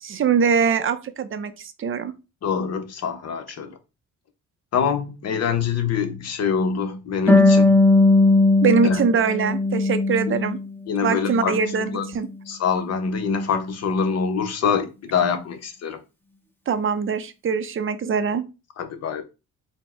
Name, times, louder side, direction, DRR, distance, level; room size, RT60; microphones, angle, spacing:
voice 1, 0.0-2.1 8.6-10.6 11.0-11.9 12.1-12.3 16.7-18.4, right 6 dB, 45° right, 0.5 m, -22 dB
voice 2, 2.4-3.8 4.7-7.8 8.8-9.0 10.3-10.4 10.9-11.6 11.9-12.1 12.5-16.0 18.8-19.2, left 6 dB, 55° left, 0.8 m, -25 dB
Harp, 7.3-10.7 11.0-12.1, left 2 dB, 5° left, 0.8 m, -18 dB
4.5 x 2.1 x 4.3 m
cardioid pair, 90°, 30 cm